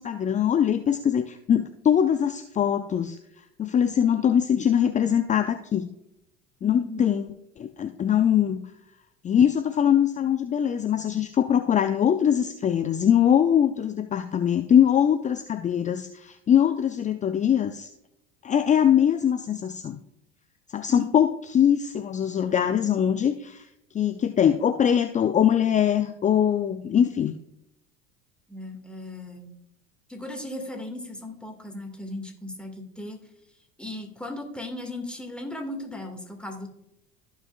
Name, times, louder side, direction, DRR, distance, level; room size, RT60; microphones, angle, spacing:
voice 1, 0.0-3.2 3.6-5.9 6.6-7.3 7.6-8.6 9.2-17.9 18.4-20.0 20.7-23.7 23.9-27.3, left 9 dB, 25° left, 8 dB, 0.5 m, -22 dB
voice 2, 6.6-7.0 21.0-21.1 28.5-29.5 30.1-33.2 33.8-36.7, left 1 dB, 5° left, 3 dB, 2.1 m, -37 dB
15.0 x 5.6 x 2.4 m, 0.84 s
hypercardioid pair, 80°, 29 cm